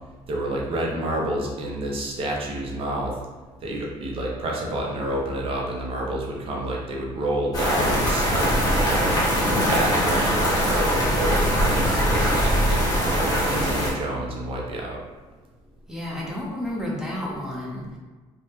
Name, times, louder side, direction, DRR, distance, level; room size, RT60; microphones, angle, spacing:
voice 1, 0.3-3.2 3.6-9.2 9.5-15.0, right 1 dB, 50° right, -2 dB, 0.6 m, -29 dB
sound 1, 7.5-13.9, equal, 35° left, 1.1 m, -22 dB
voice 2, 13.4-13.9 15.9-17.8, left 1 dB, 5° right, -4 dB, 0.8 m, -31 dB
3.1 x 2.2 x 2.8 m, 1.3 s
cardioid pair, 100°, 12 cm